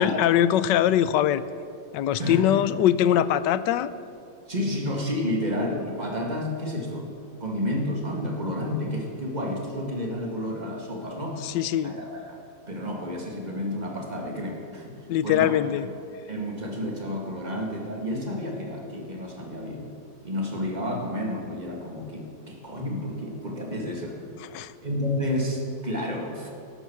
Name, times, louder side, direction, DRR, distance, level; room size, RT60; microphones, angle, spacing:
voice 1, 0.0-1.4 1.9-3.9 11.4-11.9 15.1-15.9 24.5-24.7, left 11 dB, 80° left, 15 dB, 1.2 m, -22 dB
voice 2, 2.2-2.6 4.5-7.1 7.4-11.5 11.8-12.4 12.7-14.9 15.2-15.7 16.3-19.9 20.2-24.2 24.8-26.5, left 1 dB, 25° right, 0 dB, 2.1 m, -30 dB
12.5 x 11.0 x 7.2 m, 2.5 s
omnidirectional pair, 1.9 m